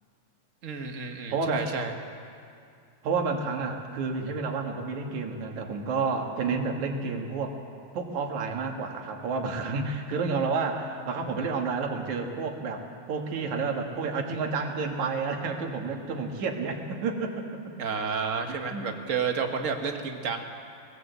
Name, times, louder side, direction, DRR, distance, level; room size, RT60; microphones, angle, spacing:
voice 1, 0.6-1.9 17.8-20.4, right 5 dB, 50° right, 4 dB, 0.9 m, -31 dB
voice 2, 1.3-1.7 3.0-7.6 7.9-17.5 18.5-18.9, right 4 dB, 75° right, 2 dB, 3.1 m, -30 dB
20.5 x 18.5 x 8.0 m, 2.3 s
omnidirectional pair, 3.4 m